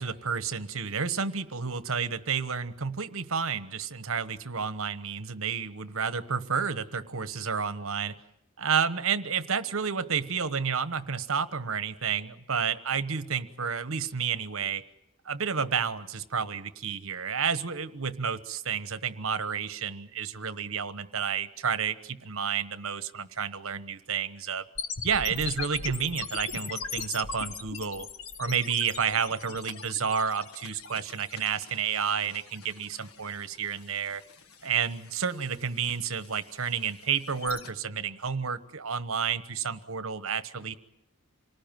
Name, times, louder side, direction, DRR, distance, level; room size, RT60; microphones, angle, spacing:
voice 1, 0.0-8.2 8.6-14.8 15.2-24.7 25.0-28.1 28.4-34.2 34.6-40.8, right 6 dB, 70° right, 13 dB, 1.2 m, -30 dB
sound 1, 24.8-37.7, left 5 dB, 75° left, 1.6 m, -40 dB
27.0 x 19.0 x 9.1 m, 0.78 s
head